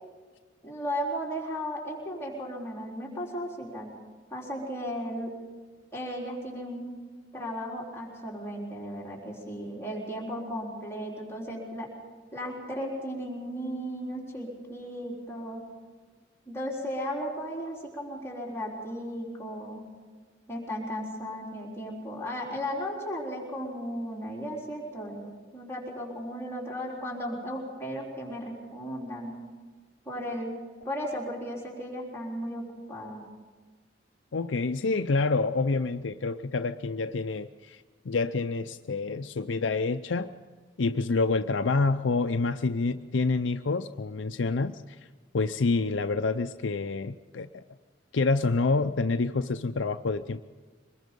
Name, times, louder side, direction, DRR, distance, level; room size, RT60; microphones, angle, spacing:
voice 1, 0.6-3.9 4.3-5.3 5.9-7.0 7.3-11.9 12.3-15.6 16.5-19.9 20.5-25.2 25.5-29.3 30.1-30.5 30.8-33.2, equal, 15° left, -4 dB, 3.9 m, -35 dB
voice 2, 34.3-37.8 38.0-40.3 40.8-44.8 45.3-47.6 48.1-50.4, left 3 dB, 80° left, 7 dB, 0.6 m, -27 dB
24.0 x 20.5 x 5.3 m, 1.4 s
head